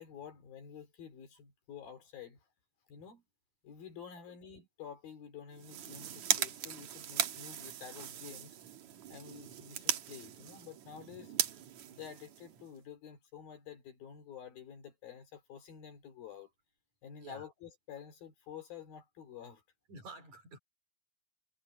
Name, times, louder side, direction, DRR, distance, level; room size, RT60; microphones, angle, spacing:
voice 1, 0.0-2.4 2.9-3.2 3.6-8.6 9.1-11.3 11.9-16.5 17.0-19.6, left 8 dB, 55° left, 4.1 m, -50 dB
sound 1, 5.5-12.8, right 10 dB, 85° right, 1.6 m, -38 dB
voice 2, 19.9-20.6, right 3 dB, 40° right, 4.6 m, -50 dB
omnidirectional pair, 5.4 m